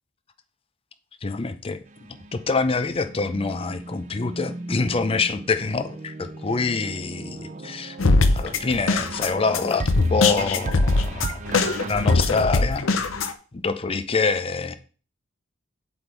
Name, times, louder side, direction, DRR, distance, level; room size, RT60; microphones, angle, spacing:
voice 1, 1.2-1.8 2.3-8.0 8.4-11.4 11.8-12.8 13.5-14.8, left 4 dB, 30° left, 0.5 m, -25 dB
sound 1, 1.9-12.4, right 3 dB, 40° right, 0.5 m, -36 dB
sound 2, 8.0-13.3, left 3 dB, 85° left, 0.7 m, -21 dB
7.9 x 3.6 x 4.6 m
head